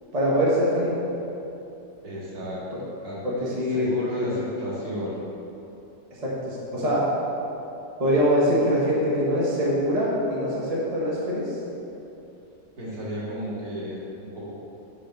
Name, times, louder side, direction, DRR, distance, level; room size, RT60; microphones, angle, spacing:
voice 1, 0.1-0.9 3.2-4.3 6.2-7.0 8.0-11.5, equal, 25° right, -6 dB, 1.1 m, -23 dB
voice 2, 2.0-3.2 3.7-5.2 12.8-14.5, equal, 55° right, -8 dB, 2.3 m, -33 dB
6.7 x 5.4 x 5.2 m, 2.9 s
omnidirectional pair, 1.9 m